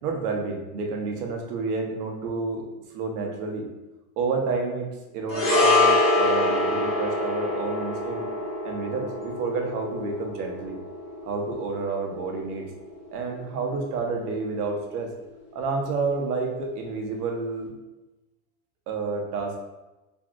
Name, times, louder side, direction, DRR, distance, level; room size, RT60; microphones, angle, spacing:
voice 1, 0.0-2.6 2.9-3.7 4.2-8.2 8.6-10.8 11.2-12.7 13.1-15.1 15.5-17.7 18.9-19.6, right 4 dB, 75° right, 2 dB, 0.8 m, -29 dB
sound 1, 5.3-13.8 14.0-14.2, left 2 dB, 25° left, 0.4 m, -25 dB
3.5 x 2.5 x 2.3 m, 1.0 s
supercardioid pair, 165°, 46 cm